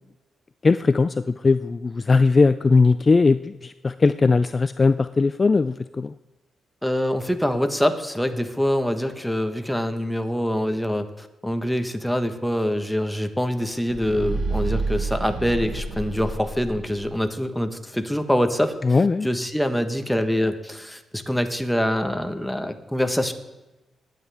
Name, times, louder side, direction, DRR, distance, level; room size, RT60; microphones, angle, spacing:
voice 1, 0.6-6.1 18.8-19.3, left 4 dB, 35° left, 12 dB, 0.3 m, -19 dB
voice 2, 6.8-23.3, equal, 5° left, 7 dB, 1.2 m, -25 dB
sound 1, 13.8-17.1, right 3 dB, 85° right, 4.8 m, -29 dB
21.0 x 9.1 x 3.5 m, 1.0 s
cardioid pair, 70°, 0 cm